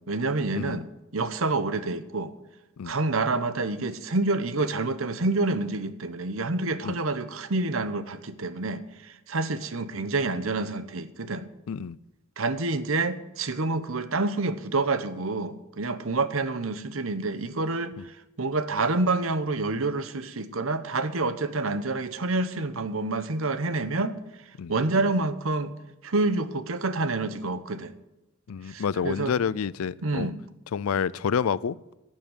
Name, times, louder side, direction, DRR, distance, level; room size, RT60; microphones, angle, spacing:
voice 1, 0.0-2.3 2.8-11.5 12.4-24.2 24.7-25.8 26.0-27.9 28.6-29.3 30.0-30.4, right 3 dB, 70° right, 13 dB, 0.9 m, -28 dB
voice 2, 11.7-12.0 18.0-18.1 24.6-24.7 28.5-30.3 30.7-31.8, left 6 dB, 80° left, 21 dB, 0.4 m, -28 dB
12.0 x 7.4 x 9.5 m, 0.93 s
head